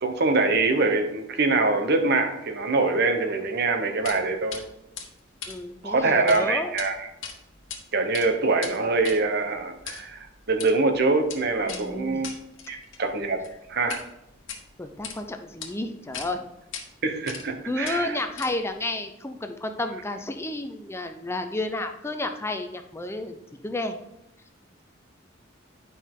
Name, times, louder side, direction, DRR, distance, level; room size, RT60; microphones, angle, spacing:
voice 1, 0.0-4.6 5.8-6.9 7.9-12.3 12.7-13.4 13.7-14.0 17.0-18.2, right 3 dB, 55° right, 6 dB, 0.9 m, -24 dB
sound 1, 4.0-4.2 4.5-4.6 5.0-6.4 6.7-6.9 7.2-7.8 8.1-14.1 14.4-15.2 15.6-15.7 16.1-16.3 16.7-16.8 17.3-17.6 17.8-18.8, left 7 dB, 75° left, 1.3 m, -39 dB
voice 2, 5.5-6.7 11.7-12.3 14.8-16.5 17.6-24.0, left 2 dB, 15° left, 6 dB, 0.5 m, -31 dB
9.7 x 5.4 x 3.7 m, 0.85 s
head